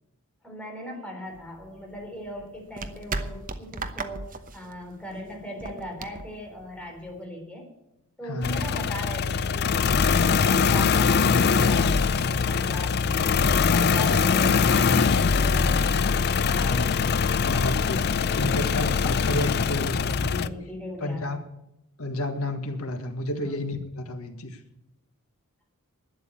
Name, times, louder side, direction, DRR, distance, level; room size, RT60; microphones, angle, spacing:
voice 1, 0.4-7.7 8.2-13.4 13.7-17.0 20.4-21.4 23.4-23.6, left 1 dB, 5° left, 0 dB, 4.1 m, -39 dB
sound 1, 1.3-7.2, right 3 dB, 40° right, 1.0 m, -37 dB
voice 2, 8.2-8.6 16.5-20.5 21.0-21.4 22.0-24.6, left 1 dB, 70° left, 6 dB, 1.8 m, -31 dB
sound 2, 8.4-20.5, left 5 dB, 50° left, 0.5 m, -22 dB
12.0 x 9.2 x 8.6 m, 0.85 s
head